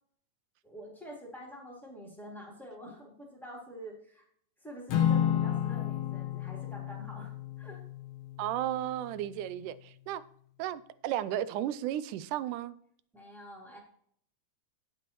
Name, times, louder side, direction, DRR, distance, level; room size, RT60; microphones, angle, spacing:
voice 1, 0.6-4.3 4.6-7.3 7.6-7.8 13.1-13.8, equal, ahead, 3.2 m, -47 dB
Acoustic guitar / Strum, 4.9-9.4, left 10 dB, 65° left, 2.3 m, -32 dB
voice 2, 8.4-10.2 10.6-12.7, right 12 dB, 85° right, 2.1 m, -34 dB
16.5 x 6.2 x 3.0 m
omnidirectional pair, 3.6 m